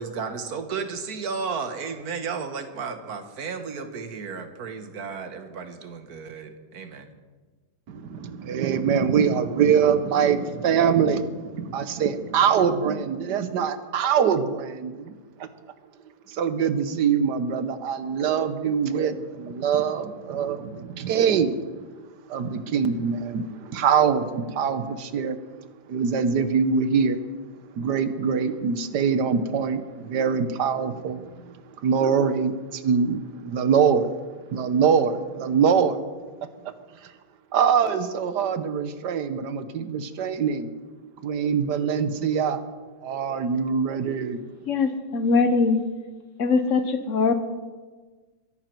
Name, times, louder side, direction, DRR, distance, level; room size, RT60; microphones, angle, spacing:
voice 1, 0.0-7.1, right 5 dB, 65° right, 7 dB, 1.7 m, -33 dB
voice 2, 7.9-15.1 16.3-21.8 22.3-25.4 25.9-27.2 27.8-31.5 31.8-34.1 34.5-36.0 36.6-36.7 37.5-40.7 41.2-42.6 43.0-44.4, right 6 dB, 85° right, 11 dB, 1.5 m, -23 dB
voice 3, 44.7-45.8 46.4-47.3, left 4 dB, 50° left, 9 dB, 1.4 m, -21 dB
23.0 x 10.5 x 4.5 m, 1.4 s
omnidirectional pair, 1.8 m